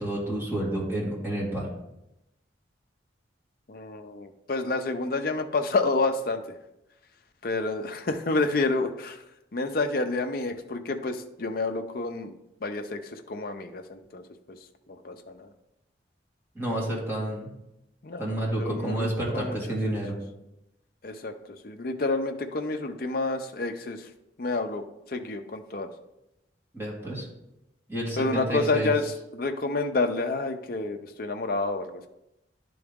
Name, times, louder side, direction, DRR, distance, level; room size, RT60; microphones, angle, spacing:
voice 1, 0.0-1.7 16.6-17.5 18.2-20.2 26.7-27.3 27.9-28.9, right 1 dB, 15° right, -5 dB, 2.0 m, -30 dB
voice 2, 3.7-6.6 7.4-9.2 9.5-12.3 12.6-14.6 14.9-15.5 18.0-20.0 21.0-24.1 24.4-24.8 25.1-25.9 28.2-32.1, left 3 dB, 50° left, 6 dB, 0.6 m, -29 dB
11.0 x 3.9 x 3.6 m, 0.88 s
head